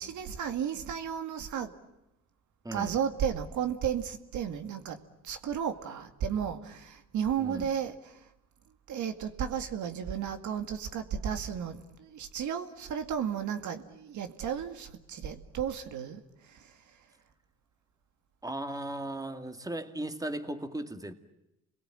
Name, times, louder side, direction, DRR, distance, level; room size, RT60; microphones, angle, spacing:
voice 1, 0.0-1.7 2.7-5.0 5.2-8.1 8.9-16.2 16.5-16.6, right 8 dB, 75° right, 7 dB, 2.2 m, -33 dB
voice 2, 2.6-3.0 7.4-7.7 18.4-21.1, right 1 dB, 10° right, 8 dB, 2.2 m, -37 dB
29.0 x 22.0 x 8.9 m, 0.88 s
cardioid pair, 90°, 30 cm